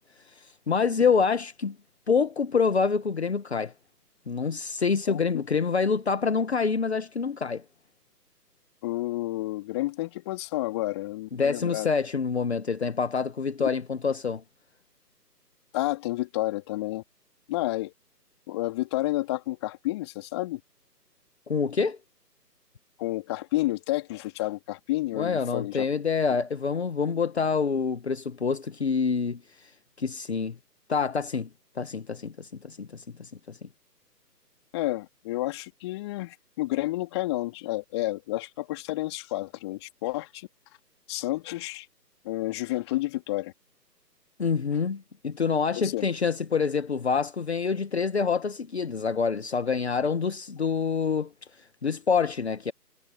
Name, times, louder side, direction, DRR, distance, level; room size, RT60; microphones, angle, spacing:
voice 1, 0.3-1.7 2.1-3.7 4.3-7.6 11.3-14.4 21.5-22.0 25.1-29.7 30.0-30.6 30.9-31.5 31.8-33.7 44.4-51.3 51.6-52.7, left 5 dB, 40° left, 1.8 m, -27 dB
voice 2, 5.1-5.4 8.8-11.9 13.6-13.7 15.7-17.0 17.5-17.9 18.5-20.6 23.0-25.9 34.7-40.5 41.1-41.9 42.2-43.5 45.8-46.1, left 18 dB, 15° left, 3.6 m, -30 dB
figure-of-eight pair, 150°, 50 cm